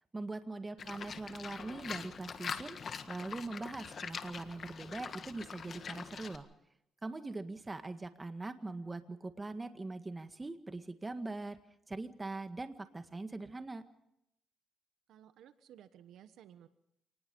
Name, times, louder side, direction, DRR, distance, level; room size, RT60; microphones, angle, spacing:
voice 1, 0.1-2.8 3.1-6.5 7.0-11.6 11.9-13.8, right 2 dB, 20° right, 8 dB, 1.9 m, -42 dB
Livestock farm animals working animals, 0.8-6.4, left 6 dB, 50° left, 1.6 m, -44 dB
voice 2, 0.8-1.1 15.1-16.7, right 10 dB, 80° right, 11 dB, 1.2 m, -57 dB
27.0 x 20.0 x 5.5 m, 0.78 s
cardioid pair, 90°, 0 cm